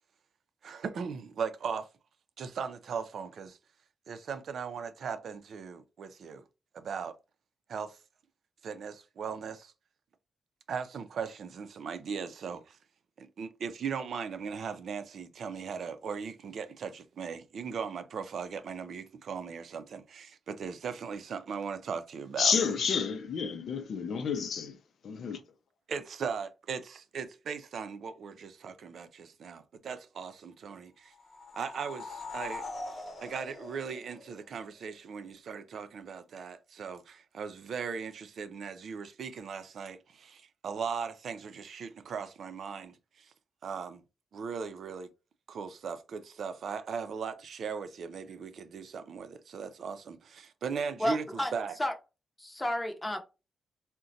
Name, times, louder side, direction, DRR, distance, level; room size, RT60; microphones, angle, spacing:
voice 1, 0.6-1.9 2.4-3.6 4.1-6.4 6.7-7.2 7.7-8.0 8.6-9.7 10.7-12.8 13.2-22.5 25.9-31.1 31.5-32.7 33.2-43.3 43.6-44.0 44.3-45.1 45.5-51.8, right 6 dB, 70° right, 0.4 m, -38 dB
voice 2, 22.4-24.7 25.0-25.4, left 6 dB, 75° left, 0.5 m, -30 dB
sound 1, 31.1-34.7, left 3 dB, 55° left, 1.0 m, -42 dB
voice 3, 51.0-51.5 51.8-51.9 52.4-53.2, left 1 dB, 15° left, 0.7 m, -31 dB
3.8 x 2.1 x 2.6 m
cardioid pair, 90°, 0 cm